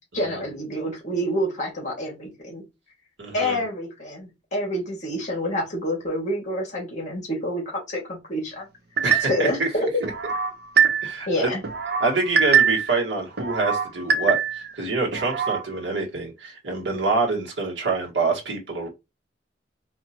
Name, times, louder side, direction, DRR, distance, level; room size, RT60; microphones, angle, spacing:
voice 1, 0.1-2.6 3.3-8.7 9.3-10.0 11.3-11.6, equal, 40° left, 2.0 m, -27 dB
voice 2, 3.2-3.6 9.0-9.7 10.0-10.1 11.0-11.5 12.0-18.9, right 3 dB, 85° right, 1.6 m, -26 dB
sound 1, 9.0-9.5 10.0-11.3 11.6-13.0 13.4-14.7 15.1-15.6, right 7 dB, 60° right, 0.8 m, -23 dB
4.4 x 2.8 x 2.9 m
head